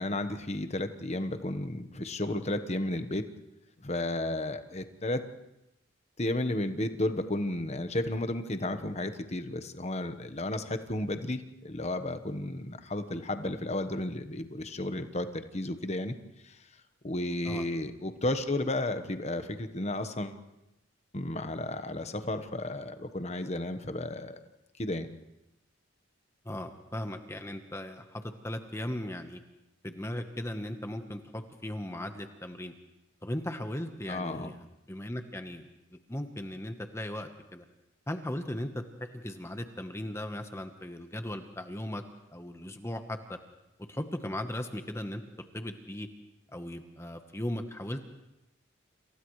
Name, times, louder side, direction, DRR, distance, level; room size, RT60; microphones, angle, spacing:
voice 1, 0.0-3.2 3.8-5.2 6.2-16.1 16.4-16.6 17.0-20.4 21.1-24.4 24.8-25.1 34.1-34.5, left 1 dB, 35° left, 8 dB, 1.1 m, -33 dB
voice 2, 26.4-29.4 29.8-32.7 33.2-34.6 34.9-35.7 36.1-37.6 38.1-42.0 42.3-43.4 43.9-46.1 46.5-48.0, left 1 dB, 15° left, 6 dB, 1.1 m, -37 dB
29.5 x 28.0 x 3.2 m, 0.92 s
head